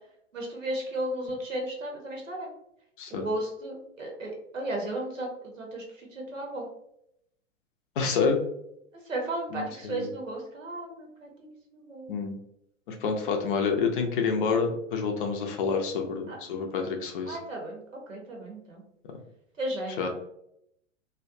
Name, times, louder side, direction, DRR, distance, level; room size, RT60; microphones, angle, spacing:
voice 1, 0.3-2.5 3.1-6.7 9.1-11.5 11.7-12.2 16.3-16.4 17.3-18.8 19.6-20.1, right 1 dB, 80° right, 0 dB, 0.8 m, -34 dB
voice 2, 8.0-8.4 9.5-10.1 12.1-12.3 12.9-17.4 20.0-20.1, left 5 dB, 45° left, 3 dB, 0.5 m, -28 dB
2.5 x 2.2 x 2.5 m, 0.76 s
figure-of-eight pair, 105°, 38 cm